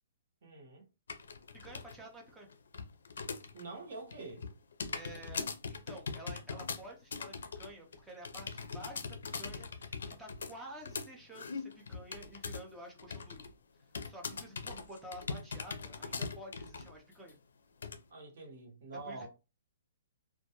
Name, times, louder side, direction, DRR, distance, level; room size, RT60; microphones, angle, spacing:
voice 1, 0.4-0.9 3.5-4.5 18.1-19.3, right 3 dB, 50° right, 0.9 m, -46 dB
sound 1, 1.1-2.0 2.3-3.7 4.0-12.7 13.0-13.5 13.9-16.9 17.3-17.4 17.8-18.0, left 5 dB, 75° left, 0.4 m, -41 dB
voice 2, 1.6-2.5 4.9-13.4 14.0-17.4 19.0-19.3, right 1 dB, 5° right, 0.5 m, -50 dB
2.2 x 2.1 x 2.8 m
hypercardioid pair, 175°, 0 cm